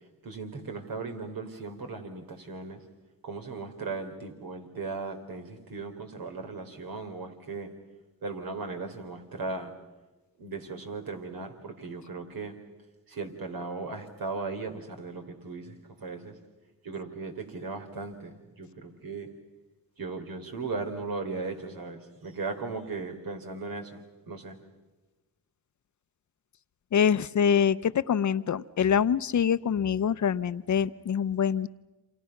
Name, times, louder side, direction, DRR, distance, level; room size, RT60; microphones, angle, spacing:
voice 1, 0.2-2.8 3.2-7.7 8.2-9.7 10.4-12.5 13.1-16.3 16.8-19.3 20.0-24.0 24.3-24.6, right 4 dB, 70° right, 4 dB, 3.7 m, -37 dB
voice 2, 26.9-31.7, left 8 dB, 50° left, 15 dB, 0.8 m, -25 dB
28.5 x 26.5 x 5.9 m, 1.1 s
cardioid pair, 60°, 37 cm